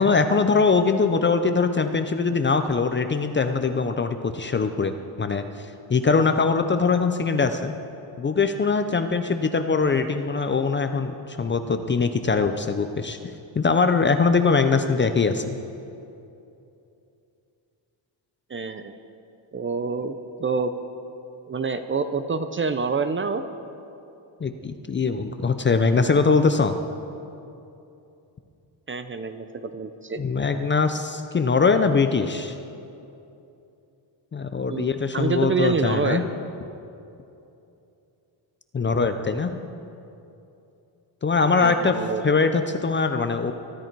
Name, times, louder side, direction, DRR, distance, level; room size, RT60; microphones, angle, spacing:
voice 1, 0.0-5.4 5.9-7.7 8.2-13.2 13.6-15.6 24.4-26.7 30.2-32.5 34.3-36.2 38.7-39.5 41.2-42.0 42.2-43.5, left 4 dB, 25° left, 8 dB, 0.5 m, -22 dB
voice 2, 18.5-18.9 19.5-20.7 21.5-23.5 28.9-30.2 34.7-36.3 41.6-42.2, right 4 dB, 25° right, 9 dB, 0.5 m, -27 dB
22.5 x 12.5 x 4.6 m, 2.8 s
cardioid pair, 165°, 47 cm